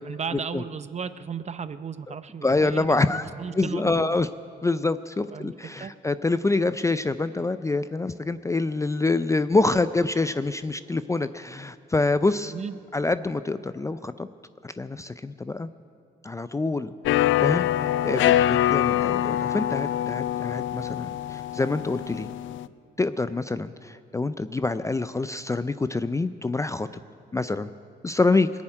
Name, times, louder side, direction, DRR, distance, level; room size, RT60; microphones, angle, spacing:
voice 1, 0.0-4.2 5.3-5.9 12.5-12.8, right 6 dB, 35° right, 13 dB, 0.6 m, -35 dB
voice 2, 2.4-3.3 3.6-4.3 4.6-12.5 12.9-14.3 14.6-15.7 16.2-22.3 23.0-26.9 27.3-27.7 28.0-28.5, left 3 dB, 15° left, 12 dB, 0.4 m, -26 dB
sound 1, 17.1-22.7, left 12 dB, 75° left, 0.5 m, -24 dB
20.0 x 7.3 x 9.0 m, 2.3 s
cardioid pair, 90°, 20 cm